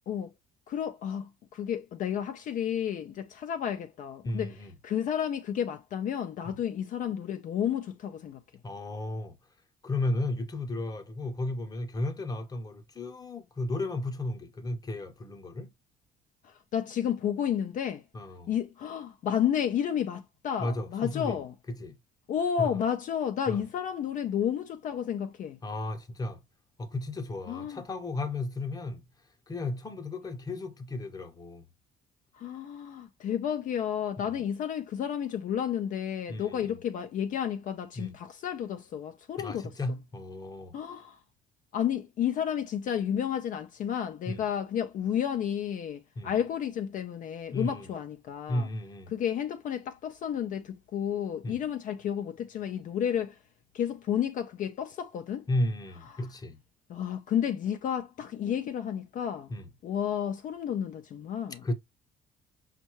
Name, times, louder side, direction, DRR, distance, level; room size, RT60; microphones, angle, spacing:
voice 1, 0.7-8.4 16.4-18.0 18.5-21.5 22.3-25.6 27.5-27.8 32.3-39.7 40.7-41.2 41.7-48.7 49.1-53.4 53.7-55.5 56.1-56.3 56.9-59.5 59.8-61.6, left 9 dB, 50° left, 0.4 m, -31 dB
voice 2, 4.2-4.7 6.4-6.6 8.6-9.4 9.8-15.7 18.1-18.6 20.6-21.4 21.8-21.9 22.6-22.7 23.5-23.6 25.6-26.4 26.8-29.0 29.5-31.7 34.2-34.5 36.3-36.8 38.0-38.2 39.4-40.8 44.3-44.4 46.2-46.4 47.5-47.9 48.5-49.1 51.4-51.6 55.5-56.6 59.5-59.7 61.6-61.7, left 2 dB, 20° left, 0.7 m, -34 dB
5.3 x 2.2 x 2.9 m
cardioid pair, 110°, 17 cm